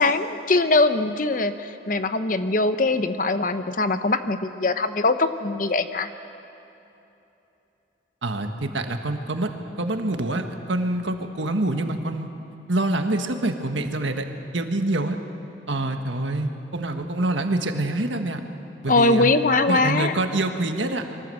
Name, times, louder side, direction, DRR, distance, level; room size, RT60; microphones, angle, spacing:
voice 1, 0.0-6.1 18.9-20.2, left 3 dB, 45° left, 10 dB, 0.8 m, -22 dB
voice 2, 8.2-9.5 9.8-12.3 12.7-14.2 14.5-15.2 15.7-18.4 18.8-19.3 19.7-21.0, right 2 dB, 80° right, 5 dB, 1.6 m, -26 dB
24.0 x 18.0 x 7.8 m, 2.9 s
head